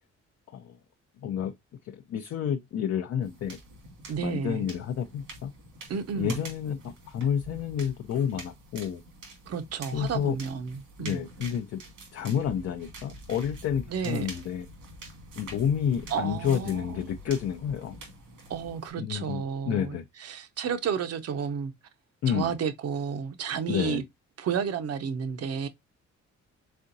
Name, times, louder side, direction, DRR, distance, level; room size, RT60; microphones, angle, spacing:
voice 1, 1.2-1.5 1.8-3.6 4.2-5.5 6.2-9.0 9.9-10.4 11.0-11.8 12.1-14.7 15.4-17.9 19.0-20.0 22.2-22.6 23.7-24.0, left 8 dB, 55° left, 0.5 m, -30 dB
sound 1, 3.2-18.9, right 2 dB, 90° right, 1.9 m, -46 dB
voice 2, 4.1-4.7 5.9-6.4 9.5-11.2 13.9-14.3 16.1-17.0 18.5-21.7 22.3-24.0 24.4-25.7, right 7 dB, 55° right, 0.7 m, -31 dB
4.2 x 3.6 x 2.6 m
cardioid pair, 90°, 30 cm